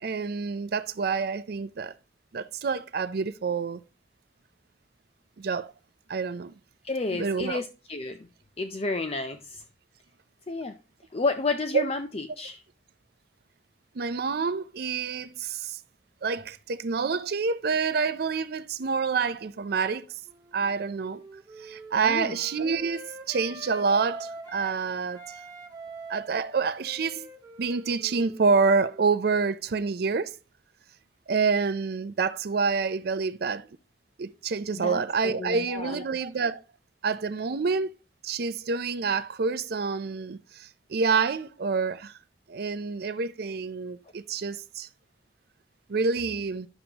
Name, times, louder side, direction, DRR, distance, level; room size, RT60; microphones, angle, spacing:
voice 1, 0.0-1.9 2.3-3.8 5.4-5.7 6.1-6.5 7.1-7.6 11.7-11.8 14.0-15.8 16.2-20.1 20.5-21.2 21.6-25.3 26.1-27.3 27.6-30.3 31.3-33.7 34.2-36.6 37.0-37.9 38.2-42.2 42.5-44.9 45.9-46.7, right 5 dB, 60° right, 0.5 m, -27 dB
voice 2, 6.8-8.3 8.6-9.6 10.5-10.8 11.1-12.6 22.0-22.3 34.8-36.0, left 3 dB, 35° left, 0.6 m, -31 dB
Wind instrument woodwind instrument, 20.3-24.8 25.1-29.6, right 2 dB, 25° right, 1.6 m, -45 dB
10.5 x 7.0 x 2.9 m
head